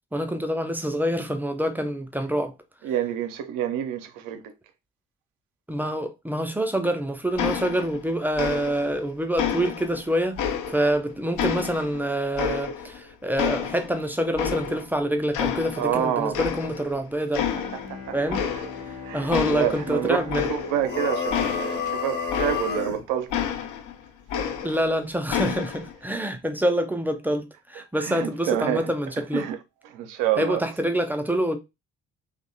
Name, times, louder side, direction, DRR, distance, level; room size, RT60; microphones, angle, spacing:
voice 1, 0.1-2.5 5.7-17.5 18.1-18.4 19.1-20.5 24.6-29.5 30.4-31.6, equal, 5° right, 0.4 m, -26 dB
voice 2, 2.8-4.4 15.8-16.4 17.9-18.2 19.0-23.3 28.0-28.9 29.3-29.6 29.9-30.6, right 10 dB, 55° right, 0.5 m, -27 dB
sound 1, 7.4-8.1 8.4-9.0 9.4-11.0 11.4-13.0 13.4-15.0 15.3-16.0 16.3-17.0 17.3-17.9 18.3-18.9 19.3-22.9 23.3-24.9 25.3-25.9, left 8 dB, 55° left, 0.5 m, -29 dB
Bowed string instrument, 17.3-22.2, left 5 dB, 75° left, 1.0 m, -41 dB
sound 2, 20.8-23.0, left 5 dB, 30° left, 0.8 m, -29 dB
2.6 x 2.2 x 2.5 m
figure-of-eight pair, 40°, 37 cm